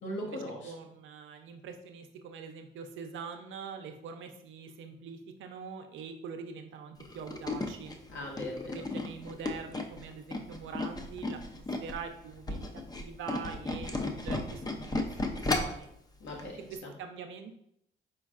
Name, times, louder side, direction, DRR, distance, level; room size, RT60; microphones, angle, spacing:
voice 1, 0.0-0.7 8.1-8.9 16.2-16.9, left 1 dB, 70° left, -2 dB, 1.4 m, -39 dB
voice 2, 0.6-8.0 8.6-15.9 16.7-17.6, right 6 dB, 75° right, 6 dB, 0.6 m, -44 dB
Tools, 7.0-12.0 12.3-15.9 16.3-16.5 16.8-16.9, left 2 dB, 20° left, 0.5 m, -34 dB
4.5 x 4.3 x 2.4 m, 0.73 s
cardioid pair, 90°, 20 cm